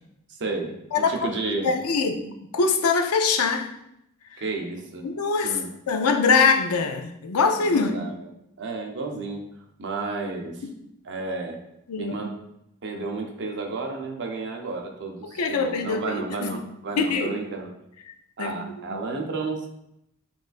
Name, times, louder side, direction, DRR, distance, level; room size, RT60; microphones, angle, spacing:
voice 1, 0.3-1.7 4.4-5.0 5.4-5.7 7.6-8.3 8.6-9.5 9.8-10.7 11.0-11.6 12.0-12.3 12.8-17.7 18.4-19.7, right 3 dB, 55° right, 1 dB, 0.7 m, -32 dB
voice 2, 0.9-1.3 1.6-3.7 5.0-5.6 5.9-7.9 10.6-10.7 11.9-12.2 15.4-16.6 17.0-17.4 18.4-18.6 18.9-19.0, left 5 dB, 75° left, 5 dB, 0.5 m, -23 dB
6.2 x 2.5 x 2.4 m, 0.79 s
head